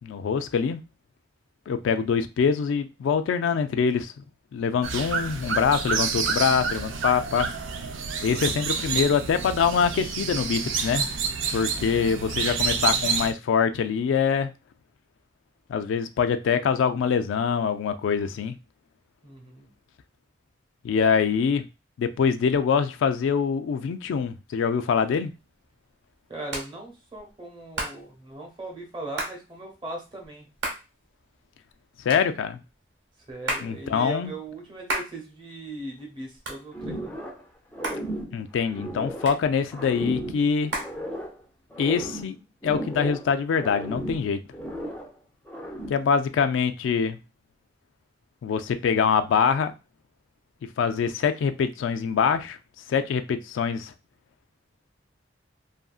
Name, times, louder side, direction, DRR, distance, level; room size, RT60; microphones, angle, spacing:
voice 1, 0.0-0.8 1.7-4.1 4.5-7.5 8.2-11.1 11.5-14.5 15.7-18.6 20.8-21.6 22.0-25.3 32.1-32.6 33.6-34.3 38.3-40.7 41.8-42.4 42.6-44.4 45.9-47.2 48.4-49.7 50.8-52.6 52.9-53.9, left 6 dB, 80° left, 10 dB, 0.3 m, -24 dB
sound 1, 4.8-13.3, right 6 dB, 90° right, 0.4 m, -28 dB
voice 2, 19.2-19.7 26.3-30.5 33.3-37.1, right 2 dB, 25° right, 0 dB, 0.8 m, -39 dB
Hands, 25.0-41.7, right 2 dB, 70° right, 0.9 m, -38 dB
sound 2, 36.7-37.5 37.7-39.4 39.7-41.4 41.7-43.3 43.6-45.1 45.5-46.1, right 1 dB, 10° left, 0.4 m, -35 dB
2.7 x 2.5 x 2.3 m, 0.28 s
head